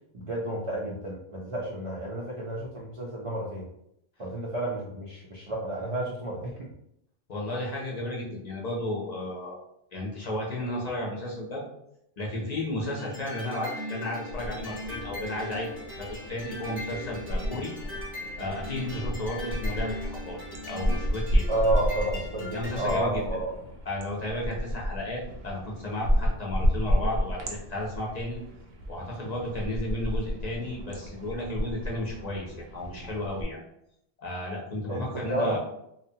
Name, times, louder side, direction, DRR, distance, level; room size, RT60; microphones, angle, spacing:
voice 1, 0.1-3.7 4.2-6.7 21.5-23.5 34.9-35.6, right 1 dB, 50° right, -5 dB, 0.4 m, -31 dB
voice 2, 7.3-9.6 9.9-11.6 12.2-15.7 16.0-17.7 18.4-20.4 20.6-21.5 22.5-23.4 23.9-28.4 28.9-33.6 34.2-35.6, left 1 dB, 45° left, -3 dB, 0.7 m, -33 dB
sound 1, 13.0-23.0, left 1 dB, 15° right, 0.8 m, -39 dB
sound 2, 14.3-17.5 17.7-33.4, equal, 80° right, 0.8 m, -32 dB
2.7 x 2.0 x 2.7 m, 0.77 s
omnidirectional pair, 1.0 m